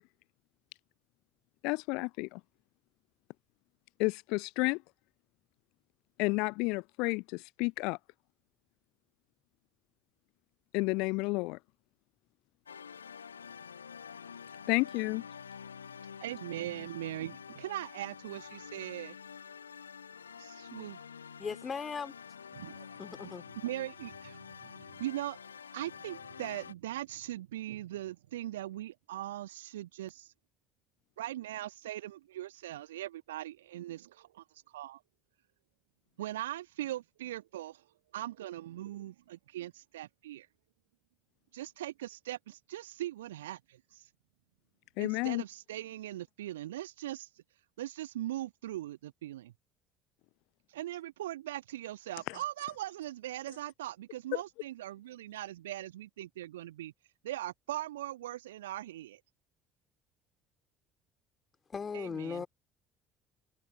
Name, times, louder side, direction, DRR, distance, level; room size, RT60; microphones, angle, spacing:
voice 1, 1.6-2.4 4.0-4.8 6.2-8.0 10.7-11.6 14.7-15.2 45.0-45.4, left 27 dB, 65° left, 0.3 m, -31 dB
sound 1, 12.7-26.7, left 7 dB, 80° left, 0.8 m, -48 dB
voice 2, 16.2-19.2 20.4-21.0 22.5-23.0 23.2-23.3 23.6-25.4 25.7-30.3 31.2-35.0 36.2-37.9 38.1-40.5 41.5-44.1 45.0-47.4 47.8-49.5 50.7-56.9 57.2-59.2 61.9-62.4, right 14 dB, 75° right, 1.3 m, -40 dB
voice 3, 21.4-22.1 23.0-23.4 61.7-62.5, left 5 dB, 30° left, 2.9 m, -37 dB
figure-of-eight pair, 55°, 0 cm